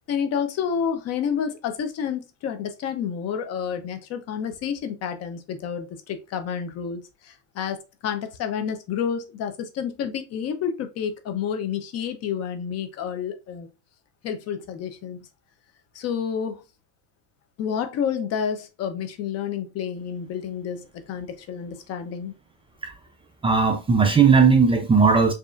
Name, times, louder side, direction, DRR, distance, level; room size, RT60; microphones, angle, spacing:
voice 1, 0.1-13.7 14.2-15.3 15.9-16.6 17.6-22.3, left 7 dB, 45° left, 0.8 m, -29 dB
voice 2, 23.4-25.3, right 5 dB, 15° right, 0.5 m, -17 dB
4.9 x 2.8 x 2.5 m
supercardioid pair, 115°, 34 cm